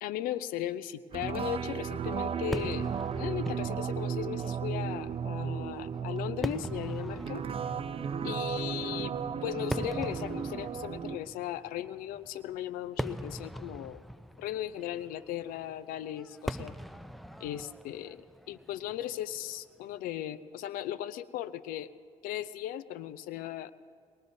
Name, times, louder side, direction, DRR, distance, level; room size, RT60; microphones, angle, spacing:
voice 1, 0.0-7.4 8.2-9.1 9.4-14.0 14.4-16.7 17.4-21.9 22.2-23.7, left 12 dB, 80° left, 15 dB, 0.5 m, -37 dB
sound 1, 1.1-11.2, right 7 dB, 40° right, 0.6 m, -34 dB
Fireworks, 2.5-19.9, equal, ahead, 0.6 m, -42 dB
23.0 x 20.0 x 2.7 m, 2.1 s
supercardioid pair, 65°, 15 cm